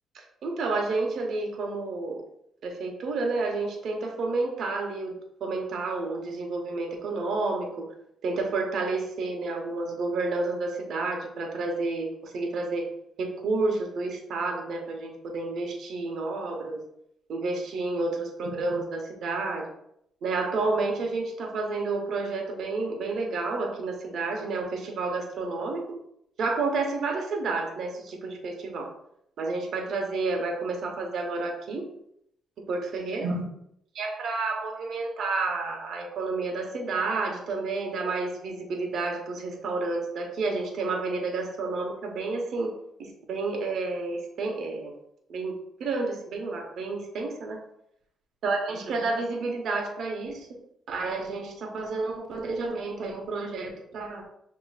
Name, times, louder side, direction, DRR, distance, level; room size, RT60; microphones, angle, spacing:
voice 1, 0.1-2.2 2.6-5.1 5.4-7.7 8.2-12.9 13.2-16.8 17.3-19.7 20.2-25.8 26.4-28.9 29.4-31.8 32.7-33.4 33.9-42.7 43.0-44.9 45.3-47.6 48.4-50.5 50.9-54.2, right 3 dB, 65° right, 2 dB, 0.9 m, -30 dB
6.4 x 2.9 x 2.4 m, 0.75 s
cardioid pair, 90°, 0 cm